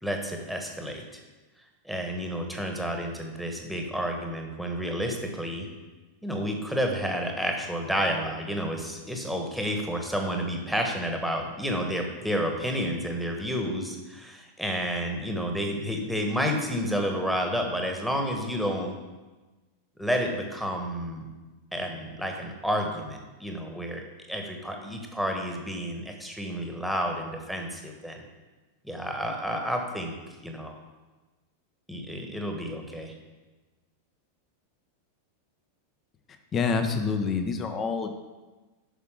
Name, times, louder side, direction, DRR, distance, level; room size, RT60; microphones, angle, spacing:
voice 1, 0.0-1.2 1.8-5.7 6.2-18.9 20.0-21.3 21.7-24.0 24.3-28.2 28.8-30.1 30.4-30.7 31.9-33.1, equal, ahead, 2 dB, 1.4 m, -30 dB
voice 2, 36.5-38.1, left 5 dB, 25° left, 7 dB, 0.8 m, -27 dB
8.2 x 6.0 x 5.0 m, 1.2 s
figure-of-eight pair, 90°, 0 cm